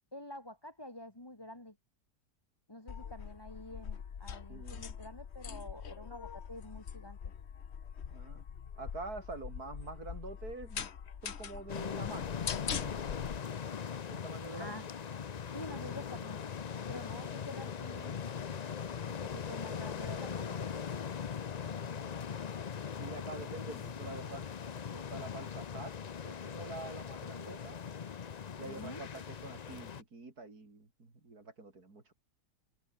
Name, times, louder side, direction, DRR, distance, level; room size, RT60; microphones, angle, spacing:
voice 1, 0.1-1.8 2.7-7.2 14.5-14.9 15.5-16.4 16.9-18.2 19.1-20.9 28.7-29.0, left 1 dB, 15° left, 2.7 m, -47 dB
sound 1, 2.9-13.4, left 7 dB, 45° left, 1.2 m, -43 dB
voice 2, 4.5-4.9 8.1-8.4 8.8-10.9 11.2-12.4 12.7-13.4 14.1-14.8 21.6-22.2 23.0-24.5 24.7-25.9 26.2-27.8 28.6-32.1, right 3 dB, 65° right, 4.8 m, -46 dB
sound 2, 11.7-30.0, left 7 dB, 75° left, 0.3 m, -40 dB
omnidirectional pair, 1.7 m